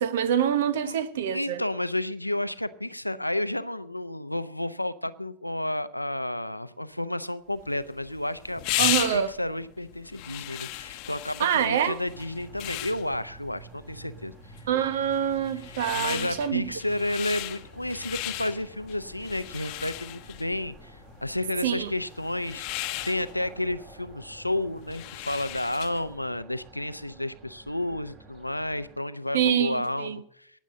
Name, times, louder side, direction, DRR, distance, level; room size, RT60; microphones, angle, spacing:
voice 1, 0.0-1.6 8.8-9.3 11.4-12.0 14.7-16.6 21.6-21.9 29.3-30.2, right 9 dB, 60° right, 1.1 m, -25 dB
voice 2, 1.3-8.6 9.1-14.3 15.7-20.9 21.2-30.5, left 1 dB, 85° left, 0.7 m, -31 dB
sound 1, 7.6-26.1, left 18 dB, 45° left, 0.9 m, -36 dB
sound 2, 12.0-29.0, right 4 dB, 35° right, 3.9 m, -50 dB
19.0 x 7.3 x 6.6 m
figure-of-eight pair, 90°, 0 cm